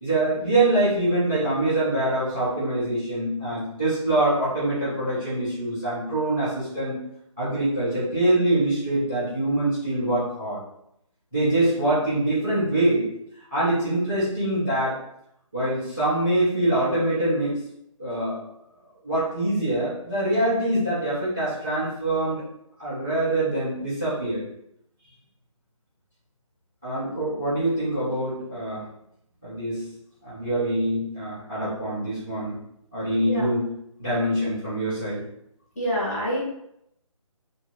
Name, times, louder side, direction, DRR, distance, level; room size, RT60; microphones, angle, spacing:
voice 1, 0.0-7.0 7.4-10.6 11.3-13.1 13.5-15.0 15.5-17.6 18.0-18.4 19.0-22.4 22.8-24.4 26.8-28.8 29.4-29.9 30.2-32.5 32.9-33.7 34.0-35.2, right 1 dB, 5° right, -21 dB, 0.4 m, -24 dB
voice 2, 35.8-36.4, equal, 25° left, -5 dB, 0.9 m, -26 dB
3.0 x 2.3 x 3.6 m, 0.77 s
hypercardioid pair, 175°, 18 cm